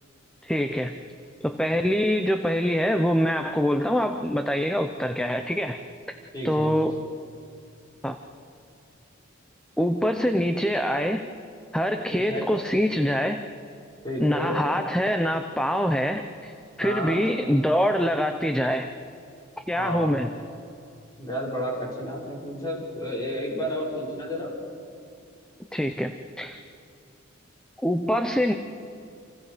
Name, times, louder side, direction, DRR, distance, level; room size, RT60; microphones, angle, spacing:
voice 1, 0.4-0.9 1.4-5.8 6.4-7.0 8.0-8.2 9.8-11.3 11.7-13.4 14.2-16.5 16.8-18.9 19.7-20.3 25.7-26.6 27.8-28.5, equal, 5° left, 6 dB, 0.7 m, -24 dB
voice 2, 6.3-6.8 12.1-12.5 14.0-14.6 16.8-17.2 19.7-20.3 21.2-24.5, equal, 20° left, -4 dB, 6.2 m, -31 dB
30.0 x 28.0 x 5.1 m, 2.5 s
head